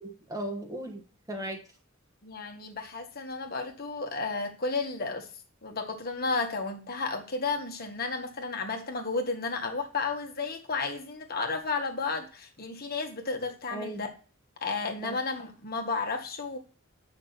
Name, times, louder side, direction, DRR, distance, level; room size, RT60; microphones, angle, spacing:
voice 1, 0.0-1.6 13.7-14.1 15.0-15.2, right 1 dB, 15° right, 1.4 m, -37 dB
voice 2, 2.2-5.3 5.6-14.1 14.6-16.6, left 4 dB, 50° left, 1.6 m, -32 dB
8.6 x 5.9 x 4.2 m
head